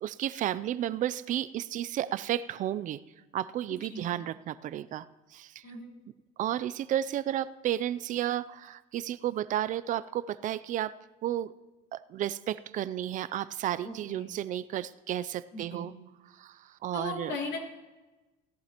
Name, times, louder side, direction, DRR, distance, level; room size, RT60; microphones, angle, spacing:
voice 1, 0.0-3.0 3.3-5.6 6.4-10.9 11.2-11.5 11.9-15.9 16.4-17.3, right 12 dB, 40° right, 16 dB, 0.4 m, -32 dB
voice 2, 3.7-4.1 5.6-5.9 13.8-14.3 15.5-15.8 16.9-17.6, left 2 dB, 65° left, -1 dB, 3.2 m, -38 dB
17.0 x 11.5 x 2.9 m, 1.1 s
cardioid pair, 140°, 20 cm